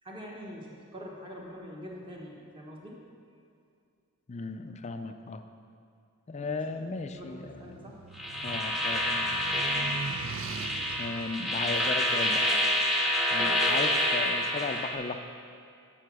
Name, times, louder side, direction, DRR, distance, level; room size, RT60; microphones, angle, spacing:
voice 1, 0.0-3.0 6.3-6.8 7.1-7.3 7.6-8.0 13.4-13.6, equal, 25° right, -2 dB, 1.3 m, -44 dB
voice 2, 4.3-5.4 6.3-7.9 8.4-9.3 11.0-12.5 13.3-15.2, left 3 dB, 30° left, 8 dB, 0.4 m, -36 dB
sound 1, 7.0-13.2, right 5 dB, 65° right, 0.4 m, -42 dB
sound 2, 8.2-14.9, left 1 dB, ahead, 0.8 m, -28 dB
7.2 x 6.7 x 6.0 m, 2.3 s
head